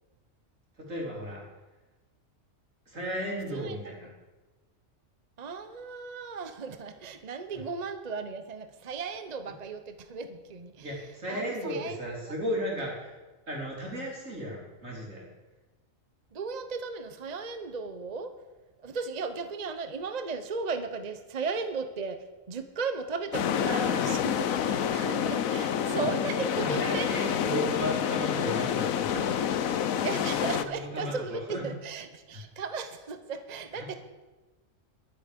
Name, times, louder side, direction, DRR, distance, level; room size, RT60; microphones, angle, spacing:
voice 1, 0.9-1.4 2.9-4.1 7.5-7.6 10.8-13.1 13.5-15.2 23.7-24.0 24.9-25.1 25.9-26.0 26.6-29.2 30.6-31.6 32.3-32.4 33.7-33.9, equal, 70° right, -3 dB, 4.0 m, -35 dB
voice 2, 5.4-11.0 11.3-12.3 16.3-18.3 18.8-27.3 30.0-33.9, right 4 dB, 35° right, 9 dB, 0.8 m, -36 dB
sound 1, 23.3-30.6, left 9 dB, 85° left, 1.2 m, -28 dB
22.0 x 8.1 x 5.1 m, 1.2 s
omnidirectional pair, 1.4 m